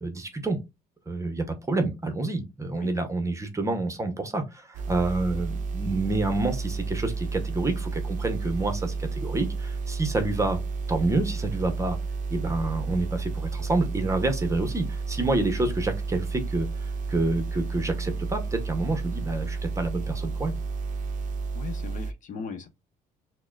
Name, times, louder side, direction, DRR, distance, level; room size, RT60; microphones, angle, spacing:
voice 1, 0.0-0.6 1.1-10.6 10.9-12.0 12.3-20.6, right 2 dB, 20° right, 0.8 m, -28 dB
sound 1, 4.7-22.1, right 4 dB, 50° right, 0.6 m, -31 dB
voice 2, 21.5-22.7, left 5 dB, 50° left, 0.8 m, -38 dB
5.9 x 2.1 x 2.3 m
cardioid pair, 110°, 17 cm